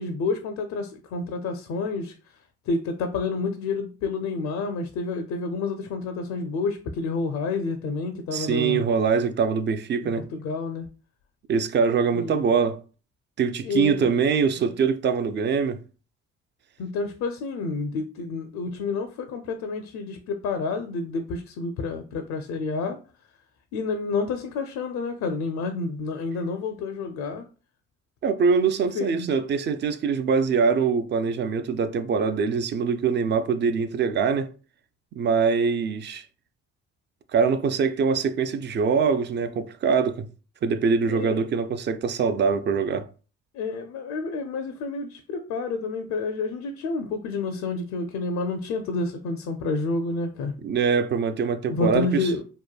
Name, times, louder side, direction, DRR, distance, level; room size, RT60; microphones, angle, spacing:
voice 1, 0.0-2.1 2.7-8.8 10.0-10.9 12.1-12.5 13.6-14.1 16.8-23.0 23.7-27.4 28.9-29.3 41.0-41.4 43.5-50.5 51.7-52.4, left 3 dB, 65° left, 0.5 m, -29 dB
voice 2, 8.3-10.3 11.5-12.8 13.4-15.8 28.2-34.5 35.1-36.2 37.3-40.3 40.6-43.1 50.6-52.3, right 5 dB, 40° right, 0.4 m, -23 dB
2.9 x 2.2 x 2.2 m
supercardioid pair, 60°, 30 cm